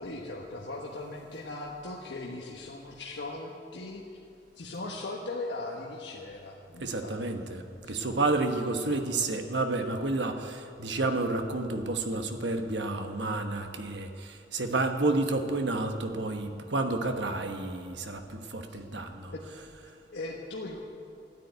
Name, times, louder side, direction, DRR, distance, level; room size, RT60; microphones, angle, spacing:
voice 1, 0.0-4.0 4.5-8.2 8.9-9.1 18.7-18.8 19.3-19.4 20.1-20.8, left 2 dB, 70° left, -2 dB, 1.3 m, -39 dB
voice 2, 6.8-19.3, right 2 dB, 70° right, 6 dB, 1.2 m, -30 dB
12.5 x 9.7 x 9.3 m, 2.5 s
head